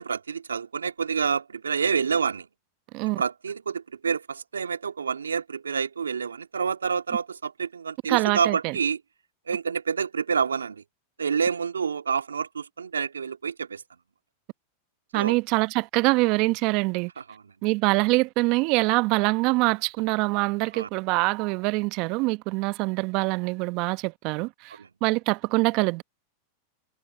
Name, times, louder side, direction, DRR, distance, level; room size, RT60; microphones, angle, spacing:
voice 1, 0.0-2.5 3.2-9.0 9.5-10.8 11.2-13.8 15.1-15.4 20.7-20.9 24.8-24.9, right 6 dB, 85° right, 2.3 m, -28 dB
voice 2, 8.1-8.8 15.1-17.1 17.6-26.0, right 24 dB, 50° right, 1.0 m, -24 dB
hypercardioid pair, 95°, 0 cm